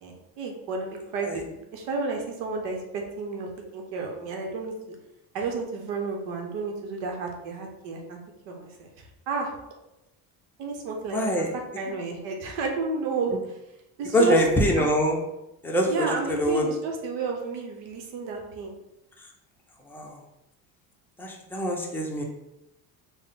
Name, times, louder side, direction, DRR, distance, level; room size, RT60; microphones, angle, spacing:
voice 1, 0.0-5.0 5.3-8.2 8.5-8.9 9.3-9.5 10.6-11.5 11.8-13.6 14.0-14.4 14.8-14.9 15.9-18.7, right 4 dB, 80° right, 1 dB, 0.9 m, -31 dB
voice 2, 11.1-11.5 14.1-15.2 15.6-16.6 19.9-20.1 21.2-22.2, equal, 5° left, -1 dB, 0.5 m, -24 dB
3.5 x 2.1 x 3.9 m, 0.91 s
cardioid pair, 110°, 43 cm